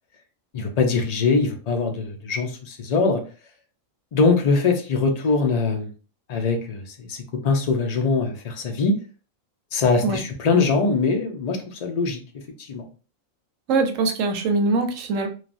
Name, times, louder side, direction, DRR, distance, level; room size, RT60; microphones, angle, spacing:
voice 1, 0.5-3.2 4.1-5.9 6.3-9.0 9.7-12.2 12.6-12.8, left 4 dB, 50° left, 4 dB, 0.4 m, -22 dB
voice 2, 13.7-15.3, right 3 dB, 75° right, 5 dB, 1.0 m, -22 dB
3.2 x 2.2 x 2.5 m, 0.36 s
omnidirectional pair, 1.4 m